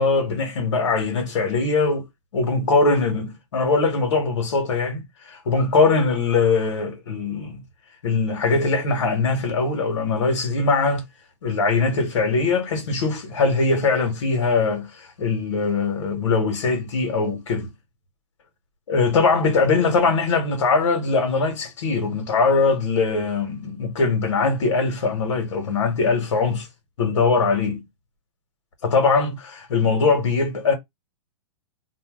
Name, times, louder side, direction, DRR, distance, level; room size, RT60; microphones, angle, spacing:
voice 1, 0.0-2.0 2.3-7.6 8.0-11.0 11.4-17.7 18.9-26.7 27.0-27.8 28.8-30.7, left 4 dB, 80° left, 1.3 m, -21 dB
2.7 x 2.3 x 3.5 m
hypercardioid pair, 155°, 15 cm